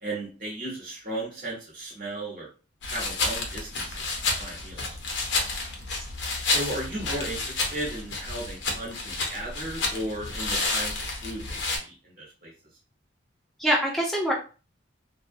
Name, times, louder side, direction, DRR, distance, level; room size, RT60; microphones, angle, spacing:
voice 1, 0.0-2.5 2.9-4.8 6.4-12.5, right 1 dB, 50° right, -3 dB, 1.1 m, -36 dB
sound 1, 2.8-11.8, left 3 dB, 75° left, 0.6 m, -30 dB
voice 2, 5.6-6.0 13.6-14.3, equal, ahead, -4 dB, 0.7 m, -26 dB
2.6 x 2.1 x 2.6 m, 0.34 s
head